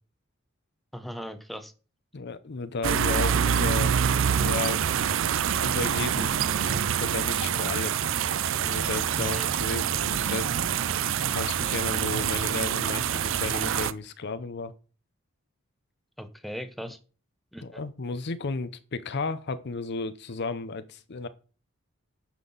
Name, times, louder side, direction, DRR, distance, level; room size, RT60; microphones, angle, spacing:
voice 1, 0.9-1.7 9.2-9.5 16.2-17.0 17.5-17.8, equal, ahead, 0.7 m, -38 dB
voice 2, 2.1-5.0 5.6-8.0 8.5-10.6 11.3-14.7 17.6-21.3, left 4 dB, 55° left, 0.6 m, -34 dB
sound 1, 2.8-13.9, right 8 dB, 65° right, 0.5 m, -26 dB
9.2 x 5.8 x 3.9 m
head